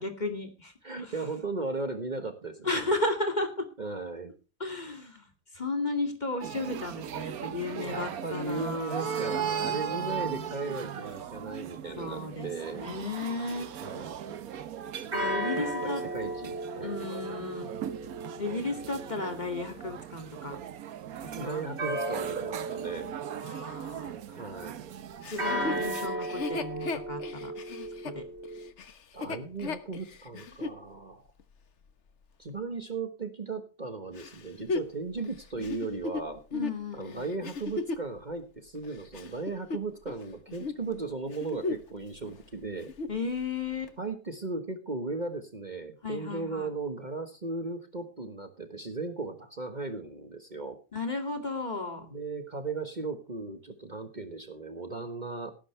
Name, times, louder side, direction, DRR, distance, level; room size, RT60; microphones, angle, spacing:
voice 1, 0.0-1.1 2.6-3.7 4.6-5.3 5.5-10.5 12.0-12.5 12.8-13.8 15.1-16.0 16.8-17.7 18.4-20.6 21.4-21.6 23.4-24.2 25.3-27.5 28.0-28.2 36.5-37.3 43.1-43.9 46.0-46.7 50.9-52.1, left 2 dB, 30° left, 5 dB, 2.5 m, -34 dB
voice 2, 0.8-2.8 3.8-4.3 7.7-12.9 13.8-14.4 15.5-17.0 21.3-23.1 24.3-24.8 29.1-31.2 32.4-36.4 36.9-42.9 44.0-50.8 52.0-55.5, right 3 dB, 35° right, 7 dB, 1.5 m, -36 dB
sound 1, 6.4-26.1, right 9 dB, 85° right, 1.4 m, -38 dB
sound 2, 13.5-14.0 15.1-20.0 21.8-24.2 25.4-28.7, right 1 dB, 50° right, 3.4 m, -36 dB
Chuckle chortle, 25.2-30.8 31.4-31.5 34.2-38.1 38.7-40.2 40.5-40.8 41.2-42.0 42.3-42.4 42.7-43.2 43.9-44.0, left 4 dB, 55° left, 1.4 m, -36 dB
18.0 x 10.5 x 3.3 m, 0.32 s
omnidirectional pair, 1.5 m